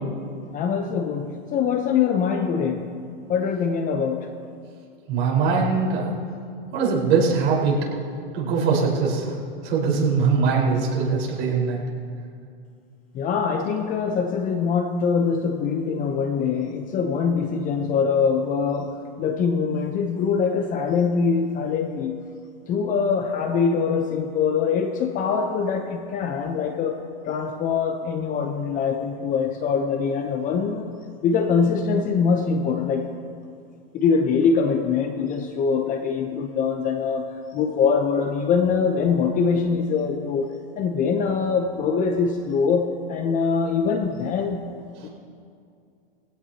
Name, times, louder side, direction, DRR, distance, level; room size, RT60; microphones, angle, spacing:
voice 1, 0.5-2.9 3.3-4.3 13.1-22.2 22.7-27.0 27.3-30.9 31.2-33.1 33.9-40.5 40.8-44.6 45.0-45.1, left 5 dB, 25° left, 5 dB, 0.9 m, -23 dB
voice 2, 5.1-6.1 6.7-7.7 8.3-9.3 9.6-11.8, right 5 dB, 40° right, -4 dB, 4.8 m, -21 dB
22.5 x 16.5 x 2.9 m, 2.3 s
hypercardioid pair, 140°, 31 cm